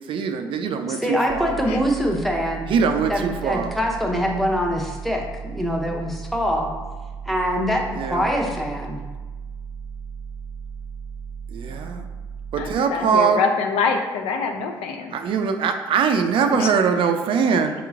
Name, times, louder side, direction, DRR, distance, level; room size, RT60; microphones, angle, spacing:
voice 1, 0.1-1.5 2.7-3.7 8.0-8.2 11.5-12.0 12.5-13.4 15.1-17.7, right 6 dB, 60° right, 6 dB, 0.4 m, -22 dB
voice 2, 1.0-2.7 3.1-5.2 5.5-6.7 7.3-9.0, equal, ahead, 0 dB, 0.8 m, -24 dB
sound 1, 1.3-12.7, right 6 dB, 35° left, 0.9 m, -36 dB
voice 3, 11.7-12.0 12.6-15.1 16.5-16.7, left 5 dB, 75° left, 4 dB, 0.4 m, -25 dB
4.7 x 2.9 x 2.4 m, 1.3 s
hypercardioid pair, 55°, 10 cm